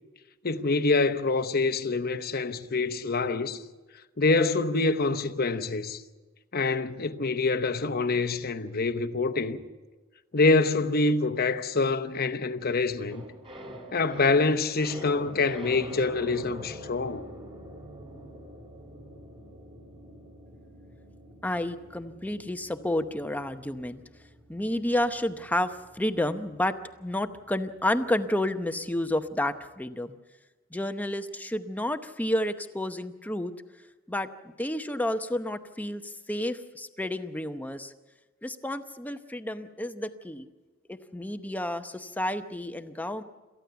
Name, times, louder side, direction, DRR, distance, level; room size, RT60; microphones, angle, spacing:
voice 1, 0.4-3.6 4.2-6.0 6.5-9.6 10.3-13.2 13.9-17.2, left 3 dB, 45° left, 1.0 m, -26 dB
sound 1, 13.1-29.4 29.7-29.8, equal, 25° right, 2.8 m, -46 dB
voice 2, 21.4-24.0 24.5-26.8 27.0-30.1 30.7-33.5 34.1-34.3 34.6-37.9 38.4-40.4 40.9-43.2, left 1 dB, 10° left, 0.8 m, -30 dB
27.5 x 14.5 x 7.0 m
head